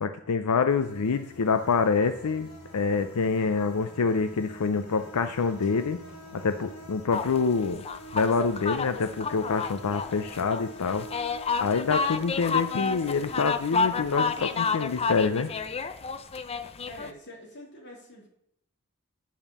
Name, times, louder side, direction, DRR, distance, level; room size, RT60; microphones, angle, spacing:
voice 1, 0.0-2.5 2.7-6.0 6.3-7.9 8.1-11.1 11.6-15.5, left 5 dB, 90° left, 10 dB, 0.5 m, -26 dB
sound 1, 0.7-15.7, equal, 75° left, 1.4 m, -47 dB
sound 2, 1.2-7.2, left 1 dB, 5° right, 2.7 m, -53 dB
sound 3, 7.1-17.1, left 5 dB, 25° left, 0.4 m, -30 dB
voice 2, 16.9-18.3, left 1 dB, 55° left, -2 dB, 3.1 m, -45 dB
8.6 x 5.4 x 7.1 m, 0.75 s
head